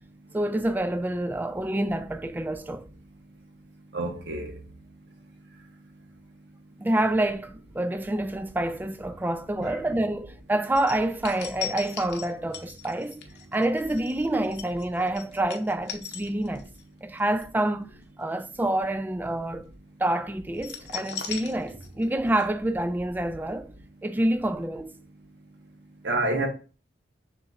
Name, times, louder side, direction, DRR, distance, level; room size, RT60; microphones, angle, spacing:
voice 1, 0.3-2.9 6.8-13.2 13.5-16.7 17.0-17.9 18.2-19.6 20.0-23.7 24.0-24.9, right 1 dB, 10° right, 0.3 m, -27 dB
voice 2, 3.9-4.5 9.6-9.8 26.0-26.5, right 2 dB, 75° right, 1.1 m, -28 dB
sound 1, 10.8-16.8 17.2-17.4 20.6-22.1 22.4-22.5, left 8 dB, 75° left, 0.7 m, -38 dB
6.8 x 3.0 x 2.4 m
head